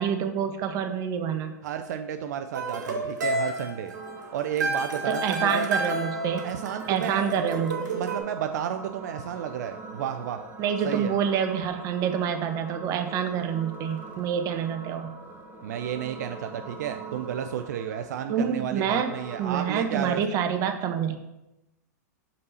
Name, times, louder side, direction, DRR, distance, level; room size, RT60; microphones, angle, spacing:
voice 1, 0.0-1.5 5.1-6.5 6.9-7.9 10.6-15.1 18.3-19.1 19.4-21.2, right 8 dB, 40° right, 6 dB, 0.8 m, -27 dB
voice 2, 1.6-3.9 4.3-5.6 6.4-7.2 7.9-10.4 10.8-11.1 15.6-20.2, right 9 dB, 70° right, 7 dB, 0.4 m, -32 dB
sound 1, 2.5-8.2, right 2 dB, 90° right, 1.4 m, -30 dB
sound 2, 3.9-19.9, right 3 dB, 20° right, 1.3 m, -43 dB
5.2 x 4.1 x 5.6 m, 0.96 s
hypercardioid pair, 120°, 9 cm